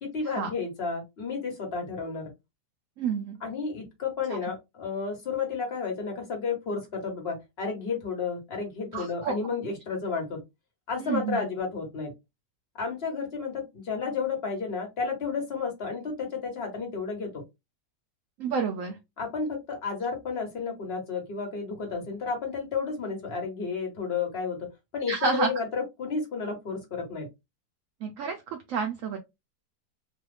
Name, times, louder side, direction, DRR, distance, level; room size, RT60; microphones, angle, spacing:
voice 1, 0.0-2.3 3.4-10.4 10.9-12.1 12.7-17.4 19.2-24.7 24.9-27.3, left 5 dB, 40° left, 1.2 m, -32 dB
voice 2, 3.0-3.4 8.9-9.3 11.0-11.4 18.4-19.0 25.1-25.5 28.0-29.2, right 5 dB, 80° right, 0.7 m, -29 dB
3.0 x 2.2 x 3.3 m
omnidirectional pair, 1.9 m